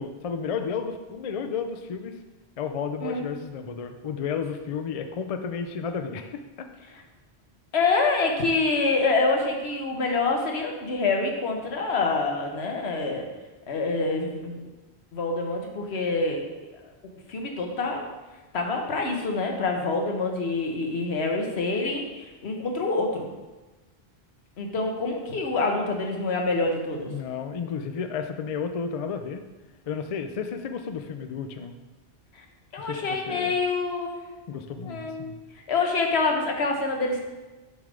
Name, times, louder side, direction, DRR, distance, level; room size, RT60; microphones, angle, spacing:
voice 1, 0.0-2.2 2.6-6.7 27.1-29.4 29.9-31.8 32.8-33.5 34.5-35.4, left 6 dB, 50° left, 7 dB, 0.4 m, -32 dB
voice 2, 7.7-13.3 13.7-14.6 15.1-16.8 17.3-18.1 18.5-23.3 24.6-27.1 32.4-32.5 32.7-34.2 34.8-35.3 35.7-37.2, left 3 dB, 80° left, 2 dB, 1.2 m, -26 dB
7.0 x 3.4 x 5.0 m, 1.2 s
omnidirectional pair, 1.1 m